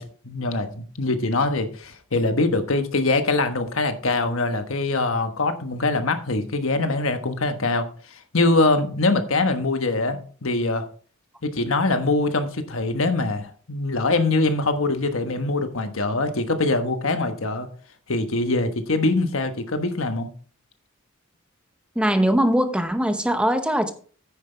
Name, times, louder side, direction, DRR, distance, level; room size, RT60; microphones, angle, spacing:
voice 1, 0.0-10.9 11.4-17.7 18.1-20.3, left 2 dB, 70° left, 8 dB, 1.3 m, -23 dB
voice 2, 22.0-23.9, equal, 5° right, 8 dB, 0.8 m, -21 dB
9.6 x 9.5 x 3.4 m, 0.42 s
head